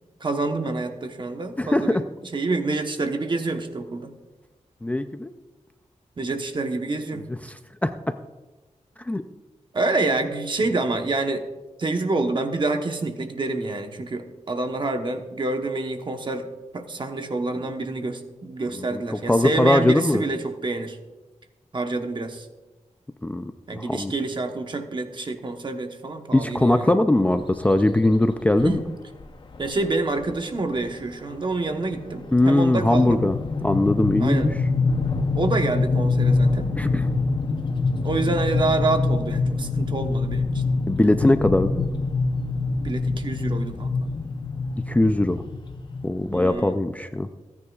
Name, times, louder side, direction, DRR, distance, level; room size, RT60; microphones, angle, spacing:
voice 1, 0.2-4.1 6.2-7.3 9.7-11.4 11.8-16.4 16.7-21.0 21.7-22.5 23.7-26.9 28.6-28.8 29.6-33.3 34.2-34.5 35.3-36.7 38.0-40.5 42.8-43.9 46.3-46.8, right 3 dB, 40° right, 5 dB, 1.0 m, -27 dB
voice 2, 1.6-1.9 4.8-5.3 7.4-7.5 7.8-7.9 9.1-9.2 18.9-20.2 23.2-24.1 26.3-28.8 32.3-33.4 33.6-34.5 36.8-37.0 40.9-41.8 44.9-45.4 46.0-47.3, left 1 dB, 10° left, 8 dB, 0.4 m, -20 dB
sound 1, 27.5-27.8 28.6-28.7 29.1-29.2 29.5-29.8 30.2-46.6, left 3 dB, 40° left, 0.7 m, -25 dB
28.5 x 9.7 x 2.4 m, 1.2 s
wide cardioid pair, 165°, 13 cm